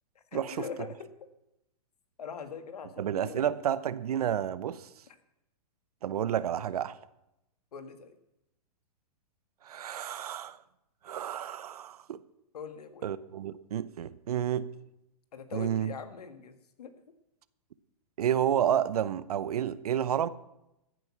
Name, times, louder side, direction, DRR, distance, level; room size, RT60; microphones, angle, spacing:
voice 1, 0.3-1.1 2.2-3.5 7.7-8.2 12.5-13.1 15.3-16.9, left 6 dB, 80° left, 1.8 m, -42 dB
voice 2, 3.0-4.9 6.0-7.0 9.6-10.6 11.0-12.2 13.0-14.7 15.5-15.9 18.2-20.3, right 10 dB, 75° right, 0.9 m, -30 dB
15.0 x 9.2 x 5.9 m
hypercardioid pair, 130°, 20 cm